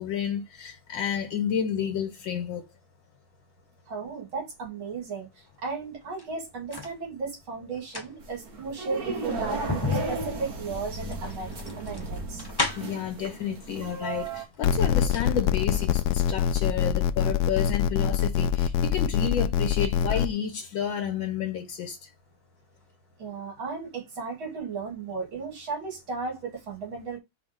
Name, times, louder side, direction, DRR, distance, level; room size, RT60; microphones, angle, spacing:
voice 1, 0.0-2.6 12.8-22.0, left 8 dB, 70° left, 2.0 m, -31 dB
voice 2, 3.9-12.5 12.9-13.0 23.2-27.2, right 4 dB, 70° right, 3.3 m, -35 dB
sound 1, 6.0-7.0 7.7-13.1 14.0-14.1 14.5-15.3 15.6-15.7, left 3 dB, 35° left, 0.4 m, -34 dB
sound 2, 8.2-14.4, right 3 dB, 50° right, 1.8 m, -35 dB
sound 3, 14.6-20.3, left 9 dB, 85° left, 0.9 m, -24 dB
5.0 x 3.6 x 5.2 m
omnidirectional pair, 2.3 m